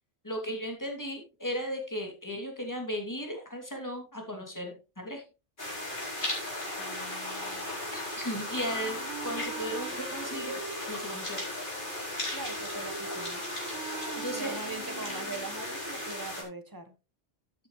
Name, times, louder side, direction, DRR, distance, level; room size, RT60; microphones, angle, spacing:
voice 1, 0.2-5.2 7.9-9.0 9.2-10.6 10.9-11.5 14.2-14.5, equal, 15° left, 2 dB, 2.8 m, -36 dB
sound 1, 5.6-16.4, left 1 dB, 45° left, 4.5 m, -36 dB
voice 2, 6.8-7.7 12.3-13.4 14.3-16.9, right 3 dB, 20° right, 9 dB, 1.3 m, -42 dB
Wind instrument woodwind instrument, 8.6-15.6, right 6 dB, 75° right, 1.4 m, -43 dB
12.0 x 8.6 x 3.2 m, 0.29 s
omnidirectional pair, 1.2 m